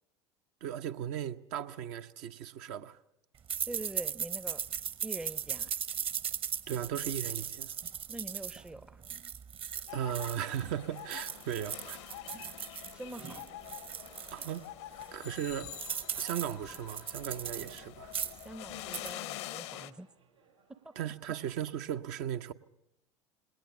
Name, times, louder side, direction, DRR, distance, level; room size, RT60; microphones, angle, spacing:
voice 1, 0.6-3.0 6.7-7.7 9.9-12.0 12.4-12.6 14.3-14.6 15.1-15.7 16.2-18.1 21.0-22.5, right 10 dB, 55° right, 0.8 m, -37 dB
sound 1, 3.5-10.7 11.0-14.6 15.0-15.1 15.4-17.8 18.1-18.5 18.8-19.1, right 8 dB, 35° right, 1.1 m, -38 dB
voice 2, 3.7-4.6 5.0-5.7 8.1-9.0 12.8-13.5 14.4-14.5 18.4-20.1 20.7-20.9, right 2 dB, 5° right, 0.6 m, -44 dB
sound 2, 9.7-21.5, right 6 dB, 80° right, 5.6 m, -62 dB
sound 3, 9.9-19.9, left 15 dB, 65° left, 0.7 m, -46 dB
20.0 x 18.5 x 7.1 m
figure-of-eight pair, 75°, 15 cm